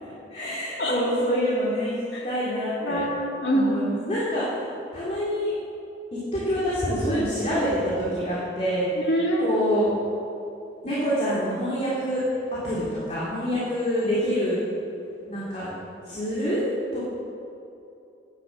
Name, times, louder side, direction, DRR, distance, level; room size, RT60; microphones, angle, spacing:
voice 1, 0.0-1.9 2.2-3.0 3.5-4.6 4.9-5.5 6.1-8.9 9.4-9.9 10.8-12.2 12.6-14.6 15.3-15.7 16.0-16.7 16.9-17.1, equal, 35° left, -10 dB, 3.1 m, -26 dB
voice 2, 2.8-3.9 9.0-9.5, equal, 75° left, -2 dB, 2.5 m, -25 dB
11.0 x 10.0 x 7.5 m, 2.7 s
head